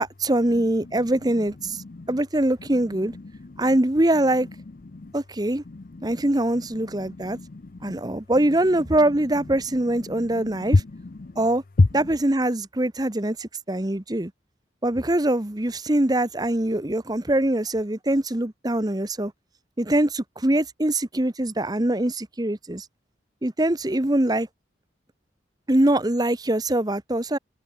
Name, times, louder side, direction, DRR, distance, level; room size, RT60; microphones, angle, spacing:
voice 1, 0.0-3.2 3.6-4.5 5.1-5.6 6.0-7.4 7.8-10.8 11.4-11.6 11.9-14.3 14.8-19.3 19.8-22.9 23.4-24.5 25.7-27.4, right 1 dB, 20° right, 1.0 m, -23 dB
voice 2, 5.7-6.0 7.0-7.9 10.2-11.4 11.8-11.9, left 2 dB, 50° left, 0.6 m, -26 dB
head